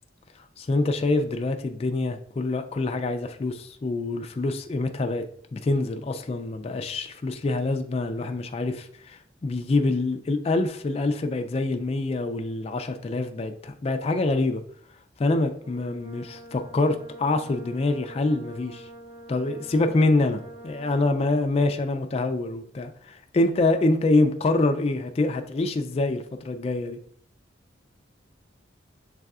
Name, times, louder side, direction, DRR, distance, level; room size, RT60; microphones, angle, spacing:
voice 1, 0.6-5.2 5.5-14.6 15.2-18.9 19.3-27.0, left 2 dB, 35° left, 6 dB, 0.3 m, -25 dB
Brass instrument, 15.6-21.5, right 1 dB, 30° right, 0.9 m, -45 dB
6.4 x 3.3 x 2.4 m, 0.63 s
head